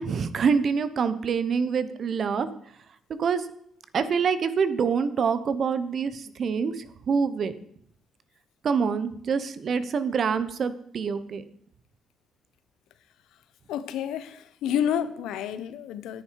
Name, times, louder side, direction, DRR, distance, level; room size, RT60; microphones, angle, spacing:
voice 1, 0.0-2.5 3.2-3.5 3.9-7.5 8.6-11.4, right 6 dB, 50° right, 0.9 m, -26 dB
voice 2, 13.7-16.2, left 9 dB, 85° left, 0.8 m, -29 dB
10.5 x 9.4 x 4.7 m
cardioid pair, 100°, 0 cm